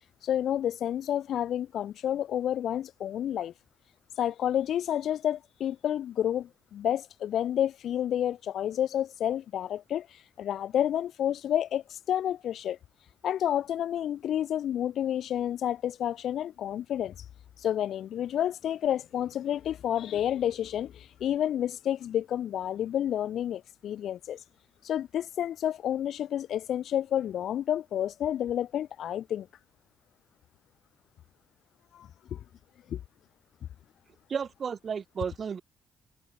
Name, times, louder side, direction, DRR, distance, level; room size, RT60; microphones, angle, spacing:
voice 1, 0.2-3.5 4.2-10.1 10.4-12.8 13.2-17.1 17.6-24.4 24.8-29.5 31.9-32.4 32.9-33.0, left 10 dB, 70° left, 2.5 m, -30 dB
voice 2, 34.3-35.6, right 6 dB, 45° right, 3.4 m, -33 dB
cardioid pair, 90°, 0 cm